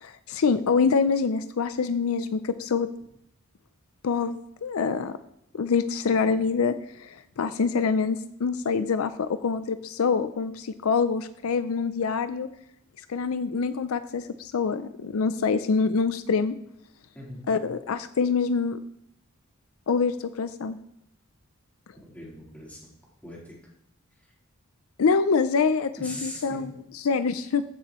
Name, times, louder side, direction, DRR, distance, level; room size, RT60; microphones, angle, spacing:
voice 1, 0.0-2.9 4.0-5.2 5.5-12.5 13.1-16.6 17.5-18.8 19.9-20.8 25.0-27.6, left 5 dB, 75° left, 12 dB, 0.5 m, -25 dB
voice 2, 22.0-22.8 23.2-23.6 26.0-26.6, left 1 dB, 5° left, -6 dB, 3.5 m, -40 dB
15.0 x 7.0 x 3.1 m, 0.78 s
head